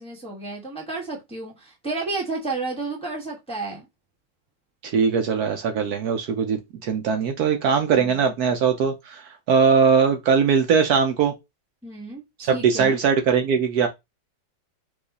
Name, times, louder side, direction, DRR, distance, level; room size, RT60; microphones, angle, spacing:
voice 1, 0.0-3.9 11.8-13.0, right 3 dB, 5° left, 0.9 m, -32 dB
voice 2, 4.8-11.3 12.5-13.9, right 6 dB, 70° right, 1.0 m, -20 dB
4.9 x 2.4 x 3.9 m
omnidirectional pair, 1.9 m